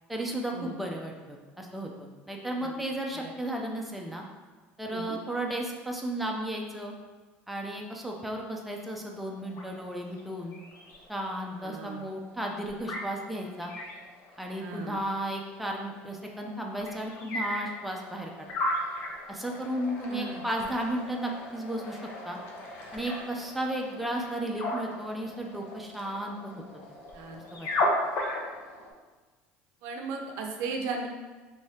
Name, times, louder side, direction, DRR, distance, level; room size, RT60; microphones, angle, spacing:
voice 1, 0.1-4.2 4.8-6.9 7.5-10.5 11.1-13.7 14.4-18.5 19.3-22.4 22.9-26.6 27.5-27.7, right 1 dB, ahead, 0 dB, 0.5 m, -34 dB
sound 1, 9.0-28.9, left 1 dB, 60° left, 0.7 m, -37 dB
voice 2, 11.6-12.0 14.6-15.0 20.1-20.4 27.1-27.4 29.8-31.1, right 4 dB, 70° right, 2 dB, 0.5 m, -36 dB
3.5 x 3.1 x 2.8 m, 1.3 s
supercardioid pair, 105°, 5 cm